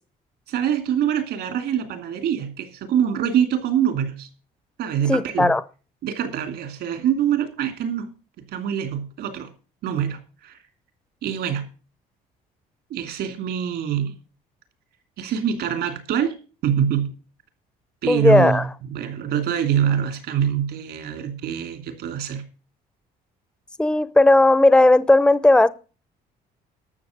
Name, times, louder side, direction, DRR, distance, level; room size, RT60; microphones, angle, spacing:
voice 1, 0.5-4.3 4.8-5.5 6.0-8.1 8.5-9.5 9.8-10.6 11.2-11.7 12.9-14.1 15.2-16.3 16.6-17.1 18.0-22.4, right 9 dB, 75° right, 8 dB, 2.9 m, -24 dB
voice 2, 5.1-5.6 18.1-18.7 23.8-25.7, left 2 dB, 5° left, 16 dB, 0.7 m, -15 dB
12.5 x 6.8 x 6.6 m, 0.36 s
cardioid pair, 110°, 17 cm